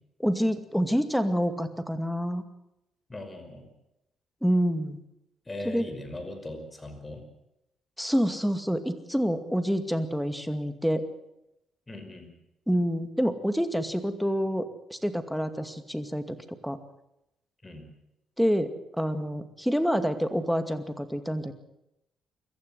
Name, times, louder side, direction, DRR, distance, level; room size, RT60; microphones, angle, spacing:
voice 1, 0.2-2.4 4.4-5.0 5.6-5.9 8.0-11.1 12.7-16.8 18.4-21.5, equal, ahead, 9 dB, 2.2 m, -27 dB
voice 2, 3.1-3.7 5.5-7.3 11.9-12.3 17.6-17.8, left 1 dB, 20° left, 6 dB, 5.6 m, -39 dB
23.0 x 14.5 x 9.4 m, 0.87 s
cardioid pair, 90°, 0 cm